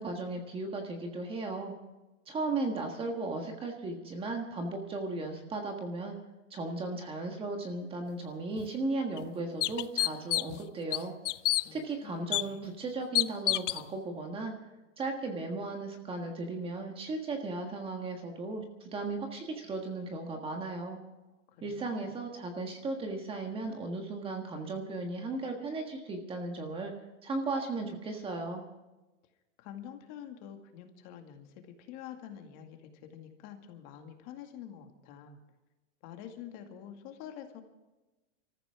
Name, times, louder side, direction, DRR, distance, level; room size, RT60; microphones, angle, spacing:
voice 1, 0.0-1.7 2.3-6.2 6.5-11.1 11.7-14.5 15.0-21.0 21.6-26.9 27.2-28.6, right 3 dB, 15° right, 3 dB, 1.5 m, -36 dB
sound 1, 8.6-8.7 9.2-9.3 9.6-10.6 10.9-11.6 12.3-12.4 13.2-13.8, left 16 dB, 75° left, 0.7 m, -28 dB
voice 2, 11.6-12.7 21.5-22.1 29.6-35.4 36.0-37.6, left 9 dB, 40° left, 5 dB, 2.2 m, -47 dB
25.5 x 14.5 x 3.6 m, 1.1 s
supercardioid pair, 165°, 37 cm